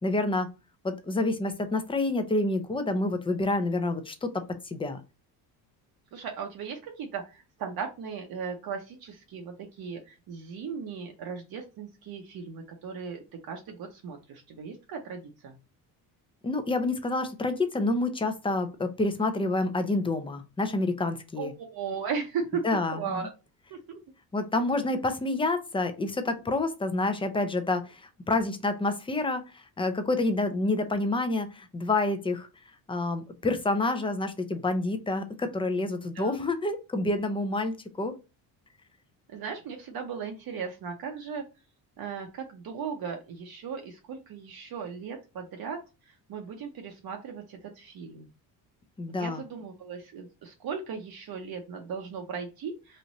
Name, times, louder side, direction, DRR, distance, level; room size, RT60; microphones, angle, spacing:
voice 1, 0.0-0.5 0.8-5.0 16.4-21.5 22.6-23.2 24.3-32.5 32.9-38.1 49.0-49.4, left 2 dB, 10° left, 8 dB, 0.6 m, -28 dB
voice 2, 6.1-15.6 21.4-23.3 23.7-24.0 36.1-36.3 39.3-41.4 42.0-45.8 46.3-48.3 49.2-53.0, right 6 dB, 55° right, 2 dB, 0.9 m, -37 dB
3.1 x 2.6 x 3.9 m, 0.30 s
cardioid pair, 85°, 44 cm